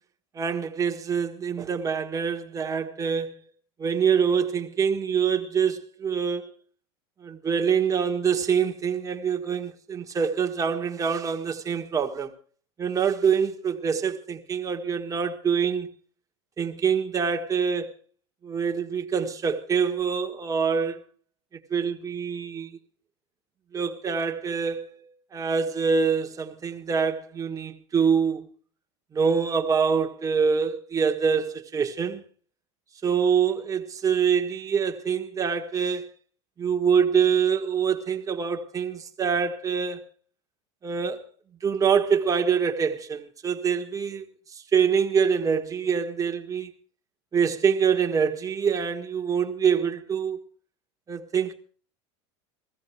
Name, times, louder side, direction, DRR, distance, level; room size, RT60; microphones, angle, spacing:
voice 1, 0.3-3.3 3.8-6.5 7.2-12.3 12.8-15.9 16.6-17.9 18.4-21.0 21.7-22.8 23.7-28.5 29.1-32.2 33.0-36.1 36.6-40.0 40.8-41.2 41.6-44.2 44.5-46.7 47.3-50.4 51.1-51.5, right 6 dB, 25° right, 1.6 m, -25 dB
16.0 x 14.5 x 4.6 m
supercardioid pair, 110°, 14 cm